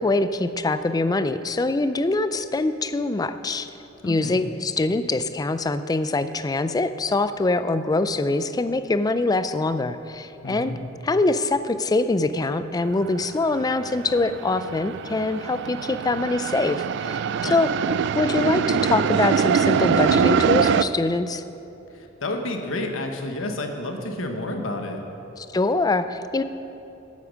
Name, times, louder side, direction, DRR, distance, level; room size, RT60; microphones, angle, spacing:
voice 1, 0.0-3.7 4.0-10.7 11.0-17.7 18.1-21.4 25.4-26.4, left 2 dB, 20° left, 12 dB, 0.3 m, -24 dB
voice 2, 4.0-4.4 10.4-10.8 17.4-17.6 21.9-25.0, left 1 dB, 90° left, 4 dB, 1.2 m, -30 dB
sound 1, 13.0-13.2 13.4-20.8, right 7 dB, 60° right, 0.3 m, -23 dB
9.4 x 8.5 x 6.2 m, 2.9 s
head